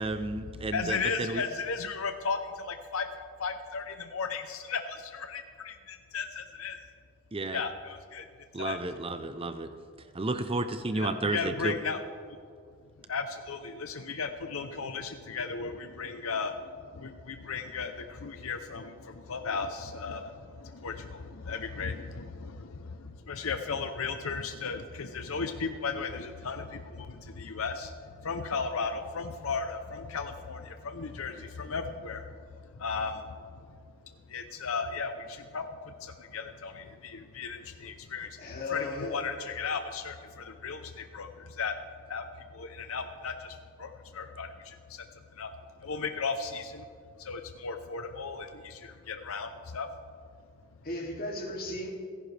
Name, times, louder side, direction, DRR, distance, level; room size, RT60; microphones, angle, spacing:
voice 1, 0.0-1.4 7.3-7.6 8.5-9.7 10.1-11.8, right 2 dB, 25° right, 9 dB, 0.6 m, -32 dB
voice 2, 0.7-3.1 3.4-6.8 7.5-8.3 8.6-8.8 10.9-12.0 12.3-12.4 13.1-32.5 32.7-33.7 34.3-38.4 38.7-41.8 42.1-42.3 42.5-45.5 45.8-46.9 47.2-49.9, left 5 dB, 70° left, 7 dB, 0.7 m, -36 dB
voice 3, 38.4-39.2 50.8-51.9, left 2 dB, 45° left, -1 dB, 2.6 m, -35 dB
29.5 x 11.0 x 3.4 m, 2.3 s
head